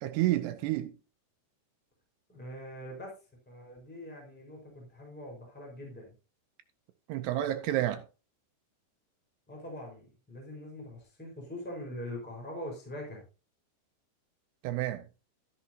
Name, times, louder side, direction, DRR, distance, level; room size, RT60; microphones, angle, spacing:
voice 1, 0.0-0.9 7.1-8.0 14.6-15.1, right 14 dB, 80° right, 2.5 m, -30 dB
voice 2, 2.3-3.1 3.5-6.1 9.5-13.2, left 1 dB, ahead, 4.1 m, -43 dB
13.0 x 10.5 x 2.8 m
omnidirectional pair, 5.4 m